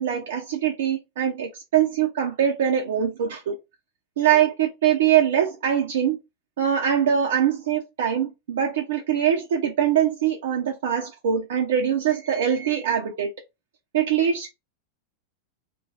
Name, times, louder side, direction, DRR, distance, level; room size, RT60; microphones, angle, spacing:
voice 1, 0.0-3.6 4.2-6.2 6.6-13.3 13.9-14.5, right 9 dB, 60° right, 0.5 m, -23 dB
2.4 x 2.3 x 3.1 m
figure-of-eight pair, 90°, 0 cm